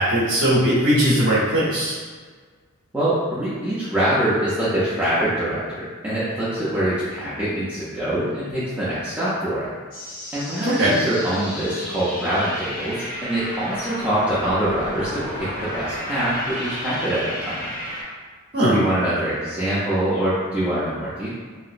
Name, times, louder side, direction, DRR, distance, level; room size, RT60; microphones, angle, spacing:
voice 1, 0.0-2.0 10.6-11.0 18.5-18.8, equal, 50° right, -9 dB, 0.9 m, -19 dB
voice 2, 2.9-9.7 10.3-17.7 18.6-21.3, right 1 dB, 10° right, -12 dB, 0.5 m, -24 dB
sound 1, 9.9-18.0, left 1 dB, 40° left, 0.9 m, -32 dB
3.2 x 2.9 x 2.5 m, 1.5 s
head